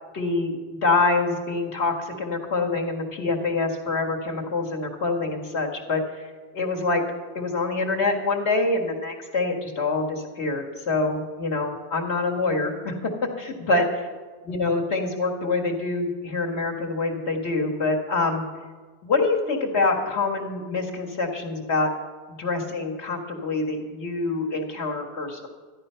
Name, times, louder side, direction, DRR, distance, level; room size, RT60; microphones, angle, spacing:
voice 1, 0.1-6.3 6.5-7.0 7.4-12.9 13.4-13.9 14.4-18.4 19.0-21.9 22.4-25.5, left 3 dB, 70° left, -1 dB, 2.0 m, -25 dB
13.5 x 11.5 x 5.6 m, 1.4 s
omnidirectional pair, 1.2 m